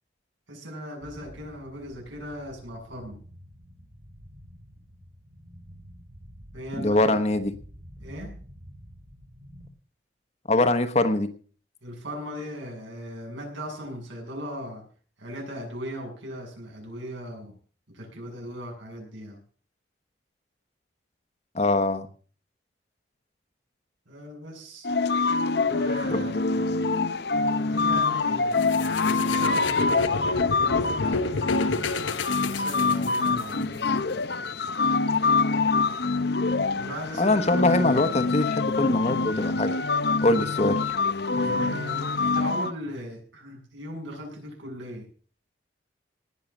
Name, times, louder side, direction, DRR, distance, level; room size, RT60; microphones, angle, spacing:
voice 1, 0.5-3.2 6.5-7.2 8.0-8.3 11.8-14.9 15.2-17.5 17.9-19.4 24.1-24.9 25.6-26.6 27.5-28.6 29.0-31.6 32.4-33.8 36.7-38.0 41.3-45.1, equal, 85° right, 0 dB, 7.4 m, -38 dB
sound 1, 1.0-9.7, equal, 60° right, 5.2 m, -48 dB
voice 2, 6.8-7.5 10.5-11.3 21.5-22.1 26.1-26.2 37.2-39.7 40.2-40.8, left 2 dB, 35° left, 9 dB, 1.1 m, -23 dB
sound 2, 24.8-42.7, left 4 dB, 60° left, 0.7 m, -25 dB
sound 3, 28.6-33.5, left 3 dB, 80° left, 1.0 m, -30 dB
19.0 x 6.7 x 7.2 m, 0.42 s
head